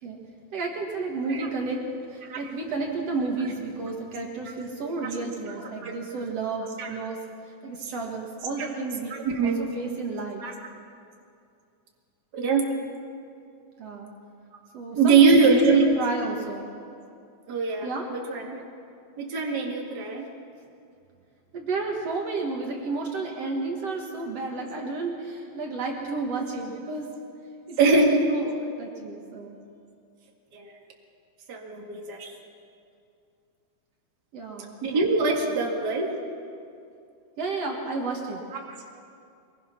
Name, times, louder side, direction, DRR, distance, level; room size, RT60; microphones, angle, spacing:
voice 1, 0.5-7.2 7.6-9.1 9.4-10.4 13.8-14.1 14.7-15.6 15.9-16.7 17.8-18.1 21.5-27.1 27.7-29.6 34.3-34.8 37.4-38.4, right 3 dB, 60° right, 0 dB, 2.7 m, -32 dB
voice 2, 9.2-9.6 10.4-10.5 12.3-12.7 15.0-16.0 17.5-18.6 19.2-20.3 27.8-28.2 30.5-30.7 31.5-32.3 34.8-36.1, right 4 dB, 35° right, 0 dB, 2.4 m, -22 dB
23.5 x 21.5 x 6.0 m, 2.5 s
omnidirectional pair, 3.3 m